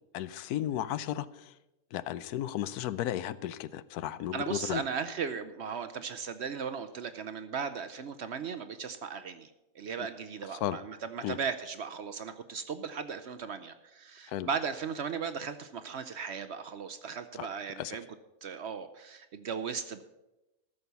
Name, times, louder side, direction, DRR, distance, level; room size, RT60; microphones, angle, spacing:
voice 1, 0.1-1.5 1.9-4.8 10.6-10.8 11.2-11.4 14.3-14.5 17.4-17.5 17.8-18.0, left 12 dB, 85° left, 16 dB, 1.1 m, -34 dB
voice 2, 4.3-9.5 9.7-18.0 18.4-20.0, right 6 dB, 60° right, 10 dB, 0.8 m, -37 dB
14.0 x 6.6 x 6.8 m, 0.98 s
omnidirectional pair, 1.6 m